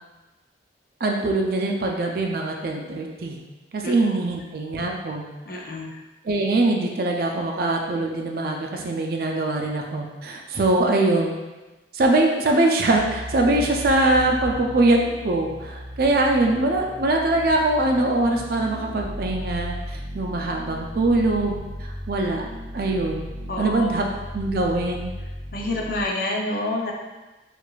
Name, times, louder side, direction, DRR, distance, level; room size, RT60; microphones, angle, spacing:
voice 1, 1.0-3.4 3.7-5.2 5.5-5.6 6.2-11.3 11.9-21.6 22.1-22.4 22.7-23.3 23.6-24.0 24.3-25.1, right 2 dB, 55° right, 1 dB, 0.4 m, -22 dB
voice 2, 5.5-6.0 23.5-23.9 25.5-26.9, left 2 dB, 50° left, -1 dB, 0.5 m, -28 dB
sound 1, 12.9-26.0, equal, 15° right, 1.5 m, -36 dB
4.8 x 2.5 x 2.3 m, 1.1 s
head